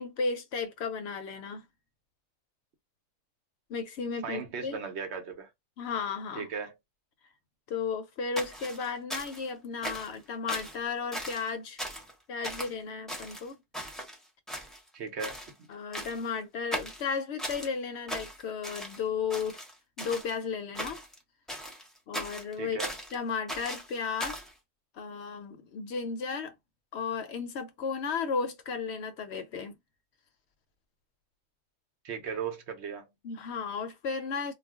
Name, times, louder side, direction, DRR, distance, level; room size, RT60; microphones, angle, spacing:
voice 1, 0.0-1.6 3.7-4.8 5.8-6.5 7.7-11.8 12.3-13.6 15.7-19.6 20.0-21.0 22.1-22.8 23.1-24.4 24.9-26.5 26.9-29.8 33.2-34.5, left 5 dB, 65° left, 0.7 m, -34 dB
voice 2, 4.2-5.5 6.4-6.7 14.9-15.7 22.6-22.9 32.0-33.1, right 6 dB, 65° right, 0.9 m, -37 dB
sound 1, 8.4-9.5 9.8-10.2 10.5-10.8 11.1-11.5 11.8-12.1 12.4-12.7 13.1-14.2 14.5-14.9 15.2-15.5 15.9-16.3 16.7-17.7 18.1-19.0 19.3-20.3 20.7-21.2 21.5-23.1 23.5-24.5, equal, ahead, 0.6 m, -38 dB
2.4 x 2.1 x 3.5 m
omnidirectional pair, 1.3 m